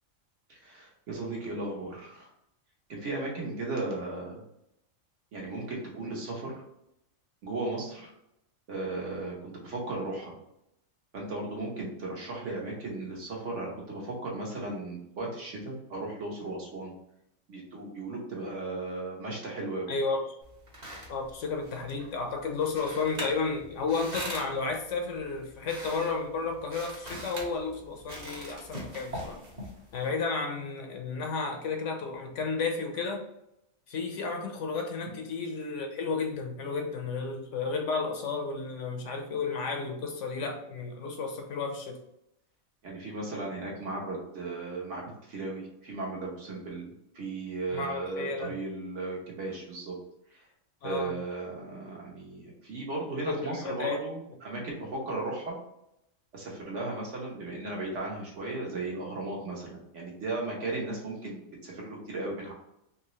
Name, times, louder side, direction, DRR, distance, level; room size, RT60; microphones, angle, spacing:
voice 1, 0.5-2.3 2.9-4.4 5.3-6.5 7.4-8.1 8.7-10.3 11.1-16.9 17.5-19.9 42.8-50.0 50.3-50.4 50.8-55.5 56.3-62.5, right 2 dB, 60° right, -2 dB, 1.3 m, -36 dB
voice 2, 19.9-20.2 21.1-29.4 29.9-33.3 33.9-42.0 47.7-48.6 50.8-51.2 53.2-54.0, left 4 dB, 70° left, 3 dB, 0.9 m, -32 dB
sound 1, 20.4-30.1, equal, 35° right, 1.0 m, -43 dB
3.6 x 2.9 x 3.0 m, 0.81 s
omnidirectional pair, 1.4 m